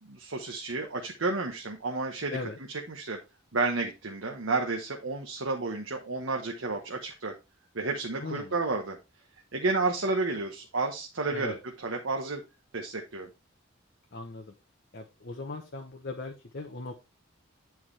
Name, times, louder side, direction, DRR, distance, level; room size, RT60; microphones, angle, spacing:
voice 1, 0.0-2.4 2.9-3.2 3.5-7.3 7.7-9.0 9.5-11.5 11.8-12.4 12.7-13.3, right 3 dB, 75° right, 1 dB, 1.1 m, -31 dB
voice 2, 8.2-8.5 11.3-11.6 14.1-14.5 14.9-17.0, left 3 dB, 55° left, 2 dB, 0.9 m, -38 dB
9.3 x 4.7 x 3.3 m, 0.26 s
head